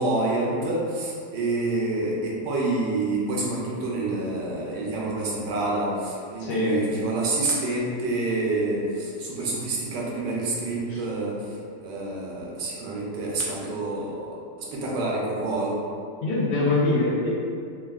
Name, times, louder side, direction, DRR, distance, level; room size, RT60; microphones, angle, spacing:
voice 1, 0.0-11.3 11.8-14.3 14.7-15.8, right 2 dB, 80° right, -4 dB, 1.2 m, -27 dB
voice 2, 6.4-6.8 10.9-11.0 16.2-17.3, left 2 dB, 80° left, -7 dB, 1.4 m, -23 dB
3.4 x 2.2 x 2.3 m, 2.4 s
omnidirectional pair, 1.8 m